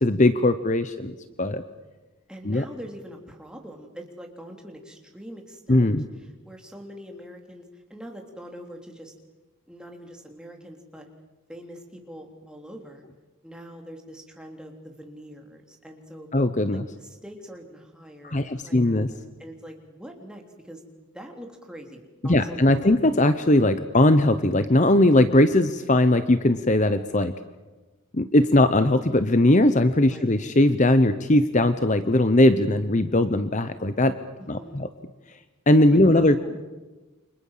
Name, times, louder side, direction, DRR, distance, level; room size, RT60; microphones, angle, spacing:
voice 1, 0.0-1.6 2.4-2.6 5.7-6.0 16.3-16.8 18.2-19.1 22.2-27.3 28.1-34.1 34.5-34.9 35.7-36.4, left 1 dB, 35° left, 11 dB, 0.9 m, -19 dB
voice 2, 2.3-9.1 9.7-11.1 11.5-13.0 13.4-16.3 16.7-19.0 19.4-22.9 30.1-30.3 34.4-34.9 35.9-36.6, equal, 5° right, 2 dB, 3.5 m, -43 dB
29.5 x 25.5 x 7.5 m, 1.2 s
head